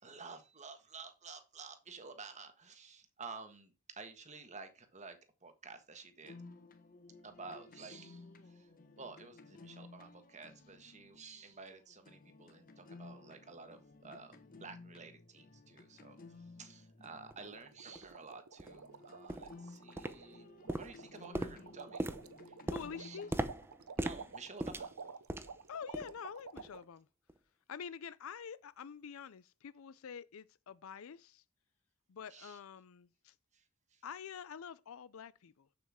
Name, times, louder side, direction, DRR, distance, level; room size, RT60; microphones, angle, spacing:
voice 1, 0.0-6.3 7.2-8.7 9.0-16.2 16.6-20.5 20.7-22.1 23.0-23.2 24.0-24.9 32.3-32.6 33.5-33.6 33.9-34.0, right 4 dB, 35° right, 1.5 m, -52 dB
sound 1, 6.2-18.3 18.7-23.5, left 3 dB, 40° left, 1.4 m, -56 dB
sound 2, 17.3-17.4 18.0-18.1 18.6-18.8 19.3-19.6 20.0-20.4 20.7-25.6 25.9-26.2 26.6-26.8 27.3-27.4, right 1 dB, 10° right, 0.7 m, -40 dB
sound 3, 17.3-26.8, right 5 dB, 85° right, 0.8 m, -51 dB
voice 2, 21.4-21.7 22.7-23.4 25.7-27.1 27.7-31.4 32.1-33.4 34.0-35.7, left 7 dB, 70° left, 0.4 m, -47 dB
7.9 x 7.8 x 3.6 m
head